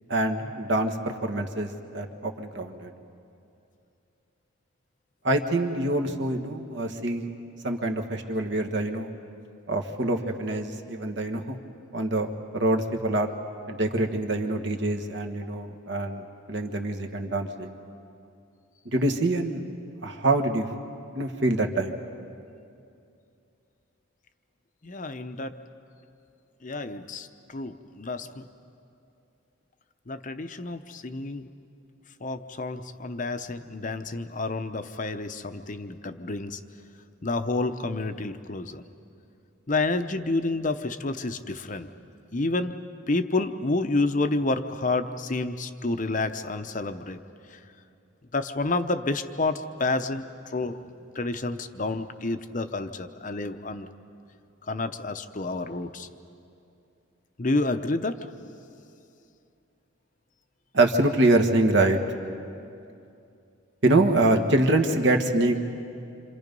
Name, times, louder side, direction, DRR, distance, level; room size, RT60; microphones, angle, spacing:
voice 1, 0.1-2.9 5.2-7.3 7.6-9.1 9.7-11.6 11.9-12.3 12.5-13.3 13.7-17.8 18.8-19.6 20.0-20.7 21.1-22.0 60.7-62.0 63.8-65.6, right 2 dB, 55° right, 4 dB, 1.5 m, -25 dB
voice 2, 24.8-25.6 26.6-28.5 30.1-31.5 32.2-36.6 37.2-38.8 39.7-41.9 42.3-42.8 43.1-47.2 47.5-47.6 48.3-50.9 51.1-53.9 54.7-56.1 57.4-58.2, left 2 dB, 40° left, 8 dB, 0.7 m, -29 dB
27.5 x 26.5 x 5.4 m, 2.6 s
head